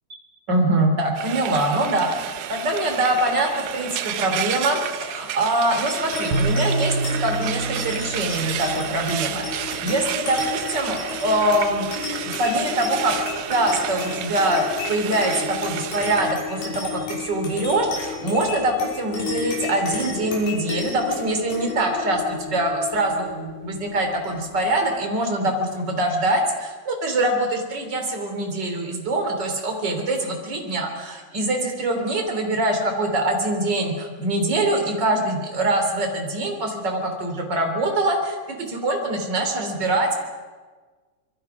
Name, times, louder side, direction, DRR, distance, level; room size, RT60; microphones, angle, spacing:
voice 1, 0.5-6.9 7.2-13.1 13.4-40.1, right 1 dB, 25° right, 3 dB, 3.0 m, -24 dB
Frying (food), 1.2-16.3, right 11 dB, 80° right, 2.4 m, -31 dB
sound 1, 5.9-24.7, left 4 dB, 85° left, 8.4 m, -33 dB
sound 2, 6.3-9.6, right 2 dB, 60° right, 2.9 m, -27 dB
26.0 x 22.5 x 5.9 m, 1.4 s
omnidirectional pair, 5.9 m